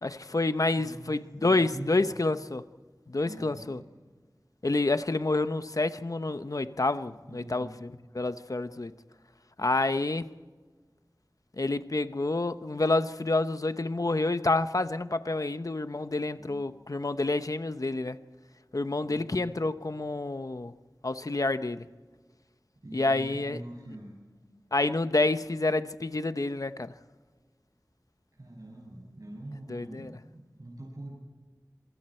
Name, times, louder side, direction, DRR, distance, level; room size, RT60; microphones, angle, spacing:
voice 1, 0.0-2.6 3.1-3.8 4.6-8.9 9.6-10.3 11.6-18.2 18.7-20.7 21.0-21.9 22.9-23.6 24.7-26.9 29.7-30.2, left 2 dB, 60° left, 0.9 m, -28 dB
voice 2, 0.8-2.1 3.2-3.9 7.3-7.8 16.4-16.7 19.0-19.7 22.8-24.2 28.4-31.1, right 1 dB, 65° right, 7.3 m, -44 dB
27.0 x 24.0 x 4.5 m
wide cardioid pair, 45°, 7 cm